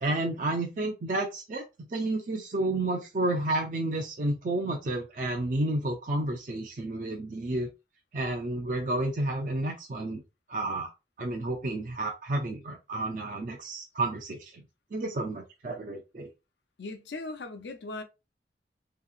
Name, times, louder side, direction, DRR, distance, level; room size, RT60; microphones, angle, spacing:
voice 1, 0.0-7.7 8.1-10.2 10.5-10.9 11.2-14.6 14.9-16.3, right 2 dB, 45° right, 0.4 m, -31 dB
voice 2, 16.8-18.0, left 2 dB, 85° left, 0.6 m, -38 dB
2.9 x 2.8 x 2.4 m
head